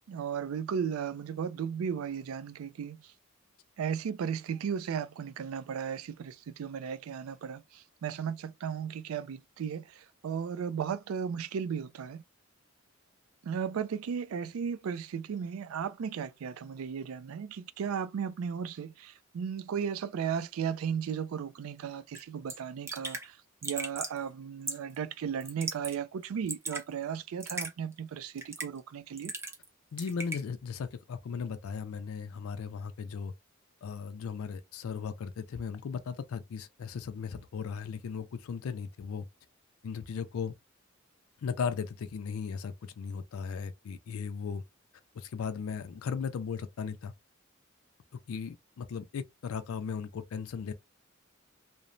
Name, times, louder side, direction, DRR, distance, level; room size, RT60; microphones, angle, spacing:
voice 1, 0.1-3.0 3.8-12.2 13.4-23.4 23.6-29.3, right 7 dB, 85° right, 0.3 m, -35 dB
Raindrop / Drip, 22.1-22.2 22.5-22.6 22.9-23.3 23.6-24.2 24.7-25.0 25.4-26.0 26.2-26.8 27.4-27.7 28.4-28.8 29.2-29.7 30.0-30.4, right 2 dB, 15° right, 0.6 m, -37 dB
voice 2, 29.9-33.3 33.8-39.3 39.8-40.5 41.4-44.6 45.1-47.1 48.1-50.7, left 6 dB, 85° left, 0.4 m, -37 dB
3.0 x 2.0 x 2.5 m
head